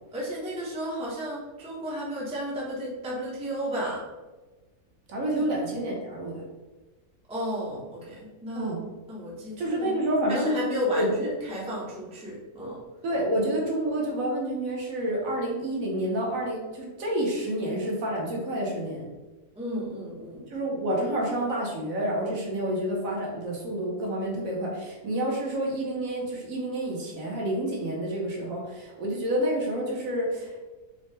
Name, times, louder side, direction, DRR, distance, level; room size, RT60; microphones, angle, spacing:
voice 1, 0.1-4.0 5.4-5.5 7.3-8.8 9.1-10.0 10.3-12.8 19.6-20.4, equal, 5° right, -5 dB, 0.4 m, -33 dB
voice 2, 5.1-6.4 8.6-8.8 9.6-10.6 11.0-11.3 13.0-19.1 20.5-30.6, right 1 dB, 65° right, -2 dB, 1.2 m, -29 dB
4.2 x 2.1 x 3.2 m, 1.2 s
omnidirectional pair, 1.6 m